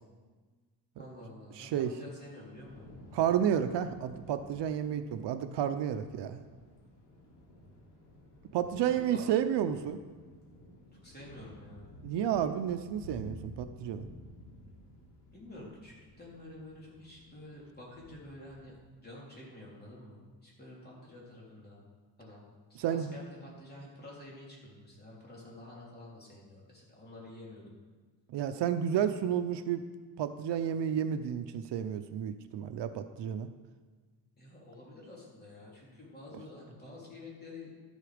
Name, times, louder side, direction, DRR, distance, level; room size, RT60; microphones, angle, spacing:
voice 1, 1.0-2.9 8.9-9.3 11.0-11.9 15.3-18.8 19.0-21.8 22.2-22.4 22.7-27.7 34.4-37.7, left 1 dB, 20° left, -5 dB, 3.4 m, -49 dB
voice 2, 1.6-1.9 3.1-6.4 8.5-10.0 12.0-14.1 22.8-23.2 28.3-29.8 30.2-33.5, right 9 dB, 75° right, 9 dB, 0.7 m, -31 dB
Thunder / Rain, 2.5-18.7, left 1 dB, 70° left, 3.6 m, -53 dB
12.5 x 8.2 x 5.1 m, 1.4 s
cardioid pair, 145°, 43 cm